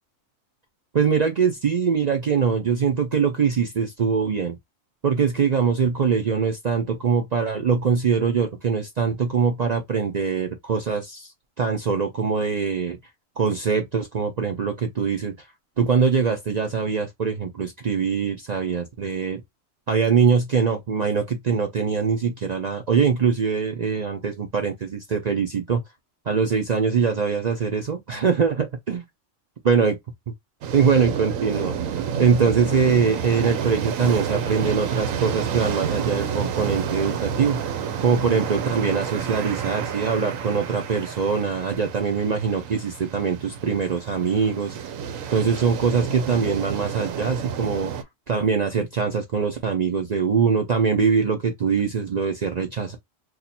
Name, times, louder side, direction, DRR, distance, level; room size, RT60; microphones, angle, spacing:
voice 1, 0.9-4.6 5.0-11.3 11.6-13.0 13.4-15.3 15.8-19.4 19.9-25.8 26.3-29.0 29.6-30.0 30.7-31.8 32.2-37.6 38.0-44.7 45.3-47.9 48.3-53.0, right 6 dB, 60° right, 0.4 m, -23 dB
sound 1, 30.6-48.0, right 7 dB, 90° right, 1.0 m, -30 dB
2.8 x 2.4 x 4.0 m
omnidirectional pair, 1.4 m